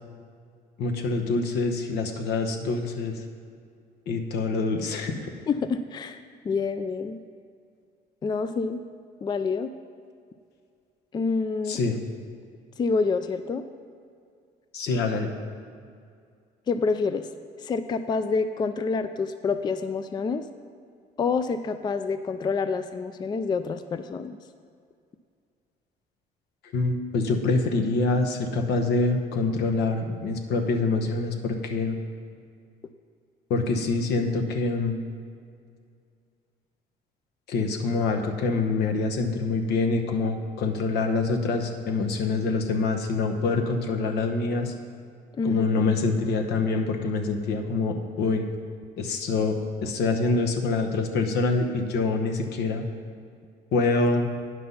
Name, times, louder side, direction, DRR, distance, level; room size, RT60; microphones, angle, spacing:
voice 1, 0.8-3.2 4.1-5.3 11.7-12.0 14.7-15.3 26.7-32.0 33.5-35.0 37.5-44.7 45.4-48.5 49.0-52.8 53.7-54.3, left 3 dB, 75° left, 4 dB, 1.0 m, -25 dB
voice 2, 5.5-6.2 6.4-7.2 8.2-8.8 9.2-9.7 11.1-11.8 12.8-13.6 16.7-17.3 17.6-20.4 21.2-24.4 45.4-45.7, left 4 dB, 25° left, 10 dB, 0.3 m, -27 dB
9.3 x 6.0 x 5.5 m, 2.2 s
cardioid pair, 110°, 17 cm